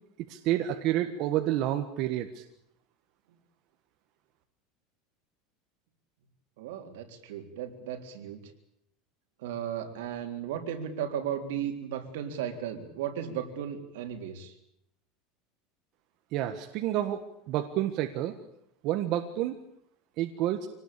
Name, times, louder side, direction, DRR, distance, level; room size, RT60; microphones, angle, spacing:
voice 1, 0.3-2.4 16.3-17.2 17.5-18.3 18.8-19.6 20.2-20.7, right 13 dB, 40° right, 6 dB, 1.5 m, -29 dB
voice 2, 6.6-8.4 9.4-14.5, right 9 dB, 75° right, 4 dB, 3.7 m, -35 dB
25.0 x 19.0 x 8.7 m, 0.76 s
supercardioid pair, 180°, 0 cm